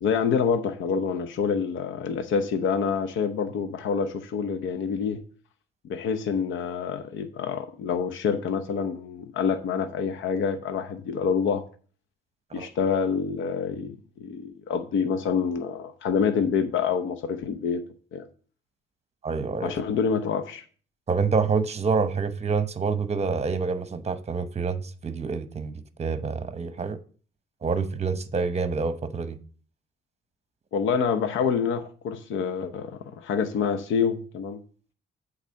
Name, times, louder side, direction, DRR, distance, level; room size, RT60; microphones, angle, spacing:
voice 1, 0.0-5.2 5.8-11.6 12.5-17.8 18.1-18.3 19.6-20.6 30.7-34.6, left 6 dB, 75° left, 0.8 m, -27 dB
voice 2, 19.2-19.7 21.1-25.7 26.0-27.0 27.6-29.4, right 5 dB, 35° right, 0.9 m, -27 dB
8.2 x 4.0 x 6.3 m
cardioid pair, 90°, 20 cm